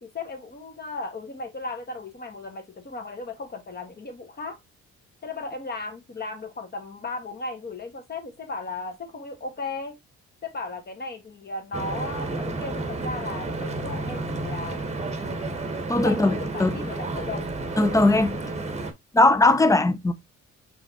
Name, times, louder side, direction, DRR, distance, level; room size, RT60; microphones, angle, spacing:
voice 1, 0.0-4.6 5.2-10.0 10.4-14.8 16.0-17.5, left 3 dB, 35° left, 1.3 m, -36 dB
Stream / Boat Water vehicle, 11.7-18.9, right 2 dB, 20° right, 1.0 m, -31 dB
voice 2, 15.9-16.8 17.8-18.4 19.1-20.1, left 2 dB, 10° left, 0.5 m, -19 dB
5.4 x 3.4 x 2.7 m
cardioid pair, 90°, 30 cm